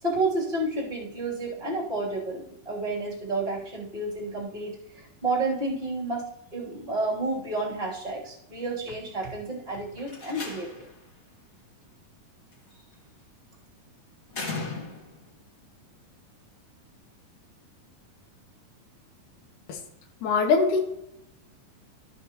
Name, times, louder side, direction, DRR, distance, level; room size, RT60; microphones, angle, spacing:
voice 1, 0.0-10.9, right 2 dB, 15° right, -5 dB, 2.6 m, -30 dB
Slam, 10.0-11.0 12.5-12.9 14.3-15.3, left 3 dB, 40° left, 1.3 m, -37 dB
voice 2, 20.2-20.8, left 4 dB, 70° left, -1 dB, 2.3 m, -22 dB
15.0 x 5.9 x 3.0 m, 0.83 s
omnidirectional pair, 4.2 m